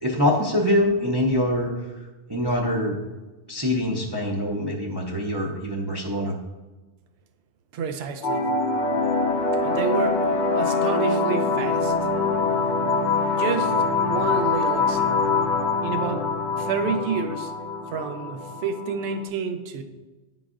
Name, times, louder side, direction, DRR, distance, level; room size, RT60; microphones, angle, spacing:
voice 1, 0.0-1.9 2.3-3.0 3.5-6.4, left 1 dB, 30° right, -3 dB, 0.5 m, -24 dB
voice 2, 7.7-8.4 9.6-10.3 10.5-11.9 13.2-15.2 15.8-16.2 16.6-17.5 17.9-19.8, right 6 dB, 75° right, 8 dB, 0.8 m, -29 dB
sound 1, 8.2-19.2, left 3 dB, 55° left, 0.6 m, -24 dB
9.9 x 3.9 x 2.4 m, 1.2 s
omnidirectional pair, 1.1 m